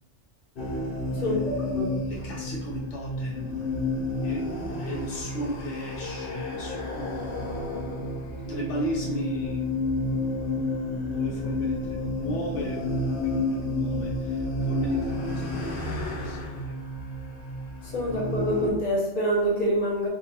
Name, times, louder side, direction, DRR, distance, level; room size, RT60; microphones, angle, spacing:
sound 1, 0.6-18.7, left 2 dB, 55° left, 0.8 m, -30 dB
voice 1, 1.1-2.0 17.8-20.1, equal, 35° left, -5 dB, 1.0 m, -26 dB
voice 2, 2.0-3.7 4.2-4.4 4.8-9.7 11.0-12.8 13.2-16.5 16.8-16.9, equal, 85° left, -3 dB, 1.1 m, -36 dB
3.4 x 2.5 x 2.8 m, 0.88 s
omnidirectional pair, 1.2 m